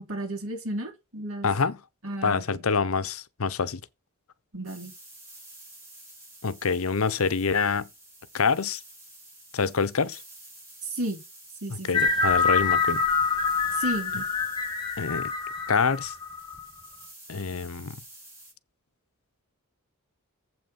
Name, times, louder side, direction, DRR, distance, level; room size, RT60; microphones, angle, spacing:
voice 1, 0.0-1.5 2.0-2.6 4.5-4.9 10.9-11.2 11.6-12.1 13.7-14.3, right 1 dB, 70° right, 3.1 m, -33 dB
voice 2, 1.4-1.8 2.2-3.8 6.4-7.9 8.3-8.8 9.5-10.2 11.7-13.0 15.0-15.3 15.7-16.1 17.3-18.0, left 5 dB, 70° left, 0.8 m, -26 dB
sound 1, 4.6-18.5, right 1 dB, 15° right, 6.2 m, -50 dB
sound 2, 11.9-16.7, left 5 dB, 20° left, 2.1 m, -26 dB
7.8 x 6.0 x 5.4 m
head